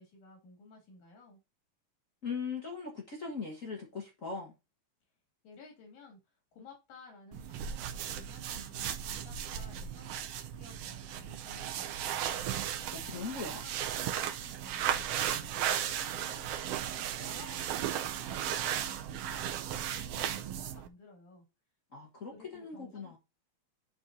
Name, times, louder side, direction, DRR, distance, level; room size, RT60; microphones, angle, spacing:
voice 1, 0.0-1.4 5.4-12.5 13.1-21.5 22.3-23.2, left 3 dB, 90° left, 3.8 m, -55 dB
voice 2, 2.2-4.5 12.9-13.6 21.9-23.2, left 5 dB, 45° left, 1.0 m, -40 dB
sound 1, 7.3-20.9, right 10 dB, 75° right, 1.5 m, -36 dB
11.0 x 4.4 x 2.7 m
omnidirectional pair, 3.3 m